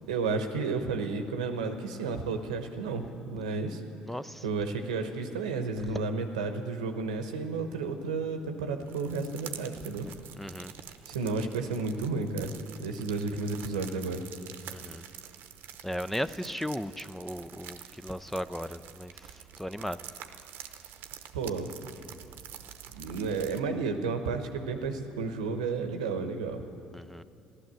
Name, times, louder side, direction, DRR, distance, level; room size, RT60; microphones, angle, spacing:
voice 1, 0.0-3.8 4.4-10.1 11.1-12.5 12.8-14.2 16.1-16.2 21.3-21.7 22.9-26.6, right 4 dB, 85° right, 6 dB, 1.0 m, -32 dB
voice 2, 4.1-4.4 10.4-10.7 14.7-15.0 15.8-19.3 19.6-20.0 26.9-27.2, equal, 5° left, 14 dB, 0.4 m, -36 dB
sound 1, 8.8-23.6, right 9 dB, 65° right, 0.8 m, -47 dB
14.5 x 11.5 x 7.5 m, 2.6 s
hypercardioid pair, 60°, 4 cm